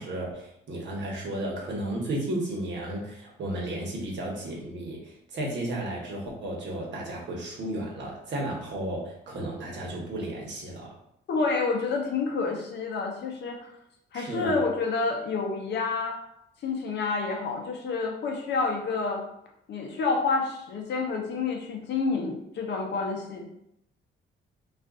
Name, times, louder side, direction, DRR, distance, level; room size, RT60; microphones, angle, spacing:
voice 1, 0.0-10.9 14.1-14.6, right 1 dB, 65° right, -2 dB, 1.0 m, -33 dB
voice 2, 11.3-13.7 14.1-16.2 16.6-19.2 19.7-23.5, left 4 dB, 60° left, 2 dB, 0.7 m, -28 dB
2.5 x 2.4 x 3.6 m, 0.77 s
cardioid pair, 90°, 20 cm